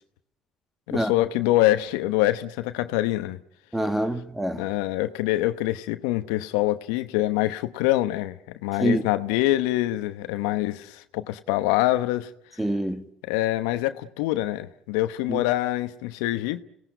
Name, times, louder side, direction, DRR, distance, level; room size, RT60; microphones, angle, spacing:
voice 1, 0.9-3.4 4.6-12.3 13.3-16.6, left 16 dB, 80° left, 1.0 m, -25 dB
voice 2, 3.7-4.7 8.8-9.0 12.6-13.1 15.3-15.4, right 1 dB, 5° right, 1.9 m, -26 dB
29.0 x 18.5 x 9.2 m
hypercardioid pair, 65°, 2 cm